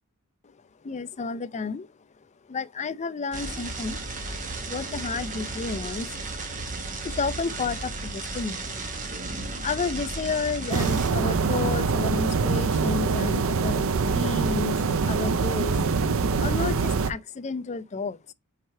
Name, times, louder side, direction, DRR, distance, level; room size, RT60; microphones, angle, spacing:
voice 1, 0.8-1.9 2.4-4.0 4.4-8.8 9.1-15.8 16.4-18.3, left 4 dB, 30° left, 0.4 m, -32 dB
sound 1, 3.3-11.1, right 3 dB, 35° right, 1.1 m, -34 dB
sound 2, 10.7-17.1, right 4 dB, 65° right, 0.5 m, -24 dB
4.9 x 4.5 x 4.3 m
head